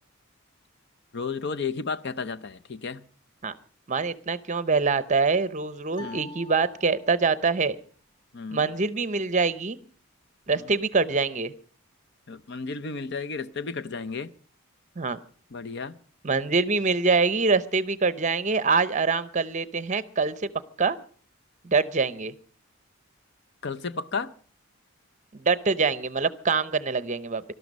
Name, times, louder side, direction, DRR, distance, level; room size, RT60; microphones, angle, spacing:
voice 1, 1.1-3.0 6.0-6.3 8.3-8.7 10.5-10.7 12.3-14.3 15.5-16.0 23.6-24.3, left 4 dB, 55° left, 0.7 m, -33 dB
voice 2, 3.9-7.8 8.5-9.8 10.5-11.5 15.0-15.2 16.2-20.5 20.8-21.0 21.6-22.3 25.3-27.5, right 4 dB, 35° right, 0.7 m, -24 dB
sound 1, 5.9-7.4, left 2 dB, 35° left, 2.0 m, -46 dB
18.5 x 12.5 x 5.3 m
head